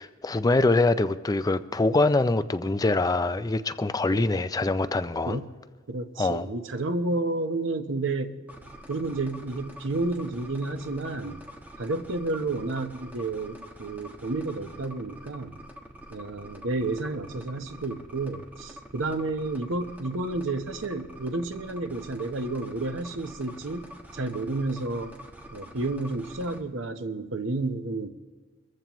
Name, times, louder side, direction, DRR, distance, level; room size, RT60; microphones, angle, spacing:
voice 1, 0.0-5.4 6.2-6.5, left 2 dB, 20° left, 12 dB, 0.4 m, -24 dB
voice 2, 5.9-8.4 8.9-11.4 11.8-15.6 16.1-25.1 25.5-28.1, right 2 dB, 85° right, 8 dB, 0.9 m, -31 dB
sound 1, 8.5-26.6, equal, 10° right, 1.2 m, -46 dB
23.5 x 14.5 x 3.0 m, 1.3 s
head